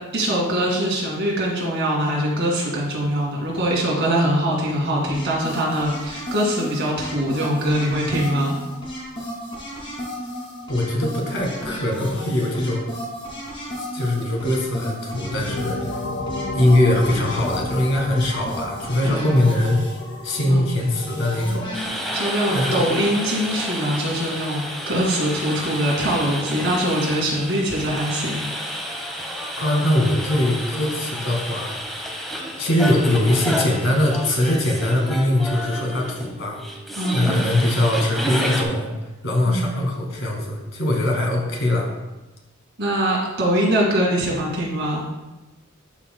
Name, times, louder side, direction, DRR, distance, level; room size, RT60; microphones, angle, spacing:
voice 1, 0.1-8.6 19.0-19.5 20.5-20.6 22.1-28.4 37.0-37.3 39.5-39.8 42.8-45.0, right 1 dB, 55° right, -3 dB, 2.2 m, -23 dB
sound 1, 5.1-21.9, equal, 25° left, 2.3 m, -34 dB
voice 2, 10.7-12.9 13.9-15.9 16.5-19.9 20.2-21.7 22.5-22.9 29.6-31.7 32.6-36.6 37.1-38.9 39.2-41.9, left 1 dB, 60° left, 0 dB, 1.8 m, -21 dB
sound 2, 15.1-24.7, left 2 dB, 80° left, 0.8 m, -35 dB
sound 3, 21.7-38.6, equal, ahead, 1.0 m, -30 dB
12.0 x 5.4 x 2.3 m, 1.1 s
head